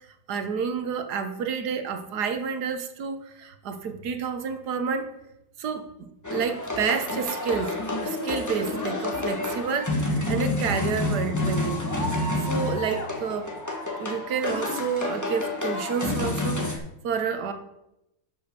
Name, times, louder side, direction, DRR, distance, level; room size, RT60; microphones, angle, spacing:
voice 1, 0.3-5.1 5.6-7.8 8.0-11.9 12.4-13.5 14.0-17.5, right 6 dB, 55° right, 8 dB, 1.4 m, -29 dB
sound 1, 6.2-16.8, left 2 dB, 10° left, 1.1 m, -29 dB
11.0 x 6.1 x 6.8 m, 0.86 s
omnidirectional pair, 2.4 m